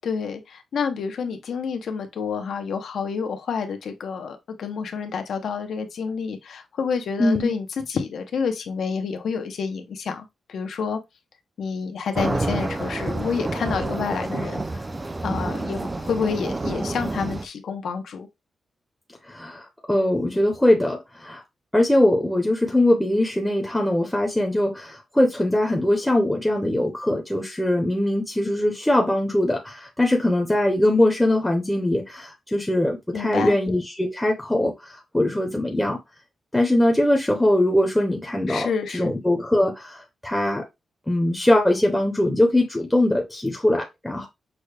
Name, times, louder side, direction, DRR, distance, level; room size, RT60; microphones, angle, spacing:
voice 1, 0.0-11.0 11.6-14.6 15.2-18.3 33.1-33.6 38.5-39.1, left 6 dB, 70° left, 0.7 m, -28 dB
voice 2, 7.2-7.5 19.3-21.4 21.7-36.0 36.5-40.6 41.1-44.3, left 1 dB, 5° left, 0.7 m, -21 dB
sound 1, 12.1-17.5, right 2 dB, 20° right, 0.4 m, -28 dB
6.2 x 2.2 x 3.3 m
wide cardioid pair, 155°, 0 cm